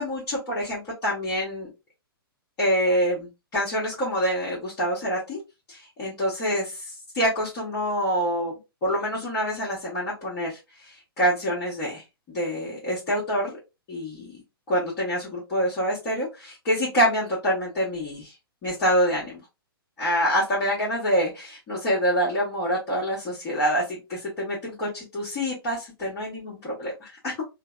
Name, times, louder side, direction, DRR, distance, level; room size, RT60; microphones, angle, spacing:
voice 1, 0.0-1.7 2.6-5.4 5.7-6.9 7.1-8.5 8.8-12.0 12.3-13.5 13.9-14.3 14.7-18.3 18.6-19.4 20.0-27.4, equal, 25° left, -8 dB, 1.2 m, -26 dB
3.2 x 2.1 x 2.4 m, 0.25 s
figure-of-eight pair, 115°, 13 cm